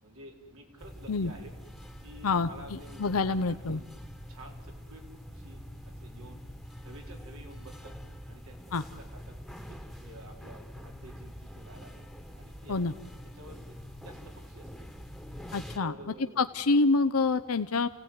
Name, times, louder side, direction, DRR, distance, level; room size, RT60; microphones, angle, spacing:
voice 1, 0.0-1.5 2.0-3.9 4.3-5.1 5.3-6.4 6.8-8.0 8.3-9.4 9.7-12.0 12.3-13.8 14.0-14.9 15.8-16.4, right 1 dB, 80° right, 1 dB, 4.6 m, -51 dB
sound 1, 0.8-15.8, equal, ahead, 1.4 m, -45 dB
voice 2, 3.0-3.8 8.7-8.8 12.7-12.9 15.5-15.9 16.4-17.9, left 3 dB, 90° left, 10 dB, 0.7 m, -26 dB
29.0 x 17.0 x 9.6 m, 1.2 s
head